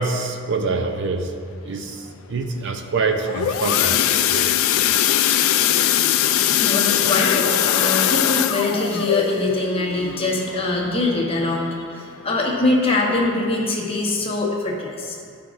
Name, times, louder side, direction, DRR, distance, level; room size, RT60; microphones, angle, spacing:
voice 1, 0.0-1.4 1.6-4.5, right 3 dB, 55° right, 5 dB, 0.6 m, -25 dB
sound 1, 3.1-11.7 12.2-12.4 12.7-12.8 13.3-13.4, left 10 dB, 65° left, 0.3 m, -21 dB
voice 2, 6.6-15.2, left 2 dB, 25° left, -4 dB, 1.1 m, -23 dB
13.5 x 5.1 x 2.5 m, 2.3 s
head